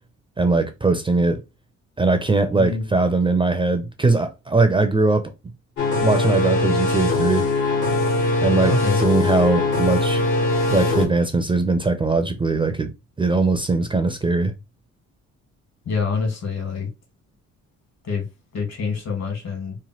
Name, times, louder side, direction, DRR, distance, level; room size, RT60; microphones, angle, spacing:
voice 1, 0.4-1.4 2.0-5.3 6.0-7.5 8.4-8.7 9.0-10.2 10.7-12.9 13.2-14.5, right 3 dB, 15° right, 0.4 m, -20 dB
voice 2, 2.5-2.9 8.6-9.0 15.8-16.9 18.0-18.2 18.5-19.8, left 4 dB, 60° left, 1.6 m, -26 dB
sound 1, 5.8-11.1, left 2 dB, 80° left, 1.5 m, -21 dB
3.1 x 2.1 x 2.8 m
cardioid pair, 90°, 30 cm